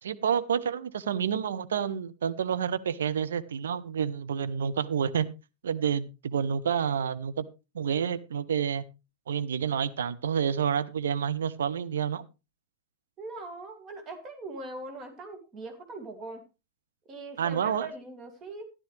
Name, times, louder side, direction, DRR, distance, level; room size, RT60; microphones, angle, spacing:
voice 1, 0.0-5.3 5.6-7.5 7.7-8.8 9.3-12.2 17.4-17.9, right 8 dB, 65° right, 11 dB, 0.8 m, -29 dB
voice 2, 13.2-16.4 17.1-18.7, right 2 dB, 30° right, 6 dB, 2.6 m, -41 dB
13.0 x 11.5 x 3.3 m, 0.28 s
figure-of-eight pair, 90°, 0 cm